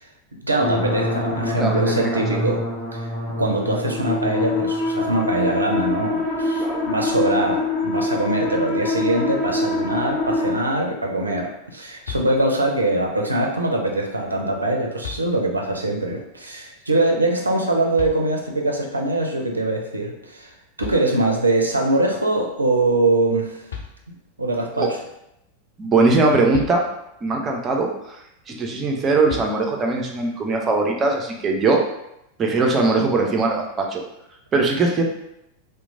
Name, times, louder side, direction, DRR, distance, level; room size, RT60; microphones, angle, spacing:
voice 1, 0.4-2.6 2.9-3.0 3.4-20.5 20.8-23.6 24.4-25.0, right 2 dB, 80° right, 1 dB, 0.4 m, -22 dB
sound 1, 0.6-10.5, left 2 dB, 40° left, 0.9 m, -25 dB
voice 2, 1.6-2.5 6.6-6.8 24.8-24.9 25.8-26.9 27.2-28.2 28.5-31.9 32.4-34.0 34.5-35.0, right 3 dB, 25° right, 1 dB, 0.5 m, -21 dB
sound 2, 12.0-12.8 14.3-14.4 15.0-15.8 18.0-18.7 20.5-20.6 20.8-21.6 23.3-23.4 23.7-24.4 26.5-27.3 29.3-30.0, left 7 dB, 65° left, 0.4 m, -38 dB
2.9 x 2.1 x 2.5 m, 0.83 s
figure-of-eight pair, 90°, 0 cm